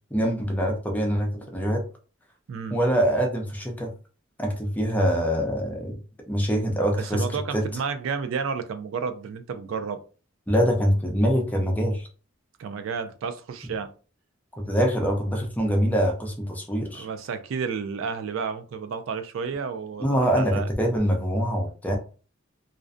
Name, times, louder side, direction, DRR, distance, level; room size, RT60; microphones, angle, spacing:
voice 1, 0.1-1.8 2.7-3.9 4.4-6.0 6.3-7.6 10.5-12.1 14.7-17.1 20.0-22.0, equal, 10° left, 0.5 m, -24 dB
voice 2, 7.0-10.0 12.6-13.9 16.9-20.7, right 5 dB, 70° right, 0.3 m, -31 dB
2.5 x 2.1 x 2.4 m
head